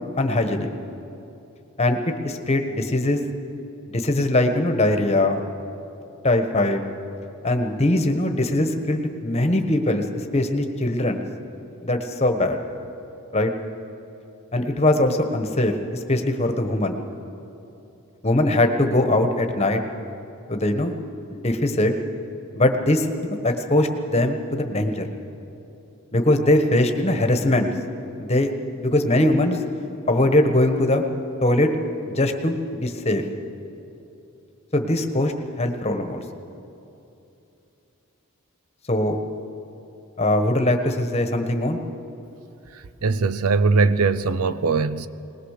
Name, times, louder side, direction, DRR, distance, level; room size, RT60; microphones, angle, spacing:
voice 1, 0.2-0.7 1.8-2.0 2.2-3.2 3.9-5.4 6.2-6.8 7.4-10.0 10.3-11.2 11.8-12.6 13.3-13.5 14.5-17.0 18.2-19.8 20.5-20.9 21.3-21.9 22.5-25.0 26.1-27.7 28.2-28.5 28.8-29.6 30.1-31.0 31.4-31.7 32.1-33.2 34.7-36.2 38.9-39.2 40.2-41.8, left 1 dB, 30° left, 1.3 m, -21 dB
voice 2, 42.7-45.1, right 4 dB, 90° right, 0.6 m, -21 dB
21.0 x 20.0 x 6.7 m
head